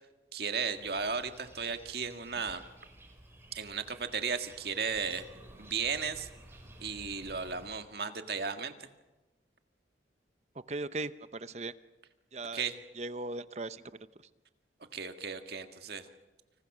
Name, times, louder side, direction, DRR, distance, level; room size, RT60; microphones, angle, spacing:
voice 1, 0.3-2.6 3.5-5.3 5.6-6.3 6.8-8.9 12.5-12.8 14.9-16.1, right 5 dB, 60° right, 7 dB, 1.8 m, -35 dB
sound 1, 0.7-7.7, right 1 dB, 15° right, 4.6 m, -54 dB
voice 2, 10.7-11.7 12.3-12.6 13.0-13.8, right 2 dB, 35° right, 13 dB, 0.7 m, -38 dB
29.0 x 26.5 x 6.2 m, 1.1 s
head